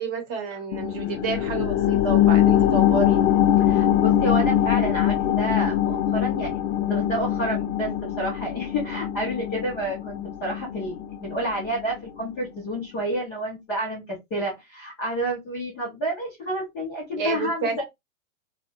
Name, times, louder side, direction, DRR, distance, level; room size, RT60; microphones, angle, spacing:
voice 1, 0.0-3.2 17.2-17.8, right 5 dB, 30° right, 0.8 m, -29 dB
sound 1, 0.7-11.8 12.2-12.3, left 11 dB, 60° left, 0.5 m, -22 dB
voice 2, 3.6-17.8, right 1 dB, 10° left, 0.3 m, -30 dB
2.7 x 2.0 x 2.7 m
hypercardioid pair, 145°, 42 cm